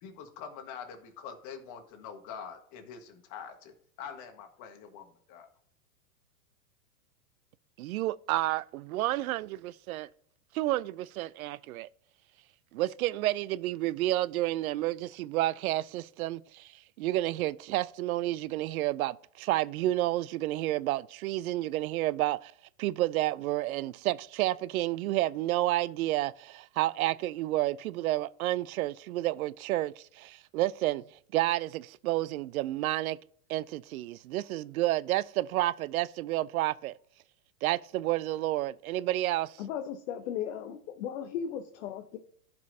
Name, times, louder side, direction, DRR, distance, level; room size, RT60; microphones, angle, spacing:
voice 1, 0.0-5.5, left 7 dB, 40° left, 1.5 m, -45 dB
voice 2, 7.8-10.1 10.5-11.9 12.7-16.7 17.0-22.5 22.8-31.0 31.3-33.2 33.5-36.9 37.6-39.6, right 16 dB, 65° right, 0.5 m, -30 dB
voice 3, 39.6-42.2, left 9 dB, 55° left, 0.9 m, -36 dB
15.0 x 5.4 x 2.7 m
hypercardioid pair, 125°, 47 cm